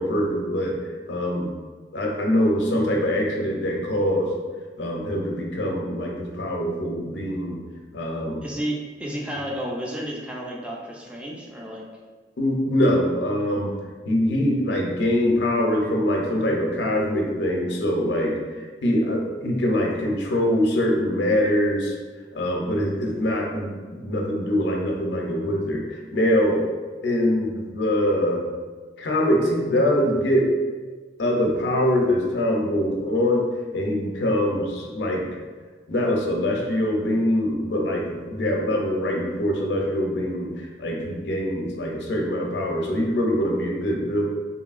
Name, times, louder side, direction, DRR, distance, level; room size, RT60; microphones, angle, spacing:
voice 1, 0.0-1.5 1.9-4.3 4.8-7.6 7.9-8.4 12.4-13.7 14.1-18.4 18.8-22.0 22.3-26.6 27.0-28.4 29.0-30.5 31.2-33.4 33.7-35.4 35.9-44.2, left 1 dB, 85° left, 0 dB, 0.5 m, -23 dB
voice 2, 8.4-11.8, equal, 5° right, -3 dB, 0.4 m, -32 dB
2.9 x 2.7 x 2.4 m, 1.4 s
head